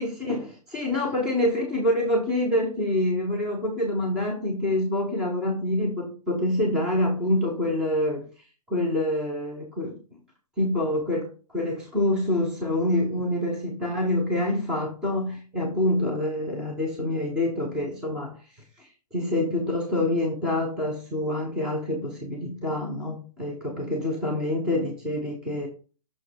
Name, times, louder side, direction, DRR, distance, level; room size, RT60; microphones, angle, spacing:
voice 1, 0.0-8.2 8.7-10.0 10.6-18.3 18.8-25.7, left 1 dB, 5° right, -2 dB, 0.5 m, -26 dB
6.1 x 6.0 x 3.3 m, 0.37 s
hypercardioid pair, 170°, 20 cm